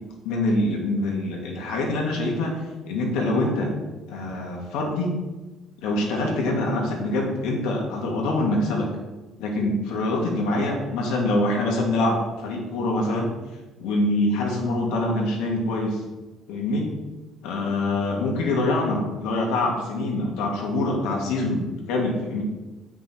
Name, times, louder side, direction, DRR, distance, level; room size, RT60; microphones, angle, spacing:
voice 1, 0.2-2.5 2.9-3.7 4.1-5.2 5.8-8.9 9.4-13.3 13.8-16.0 16.5-16.9 17.4-22.4, left 2 dB, 90° left, 0 dB, 2.0 m, -25 dB
8.3 x 5.9 x 4.4 m, 1.1 s
cardioid pair, 155°, 0 cm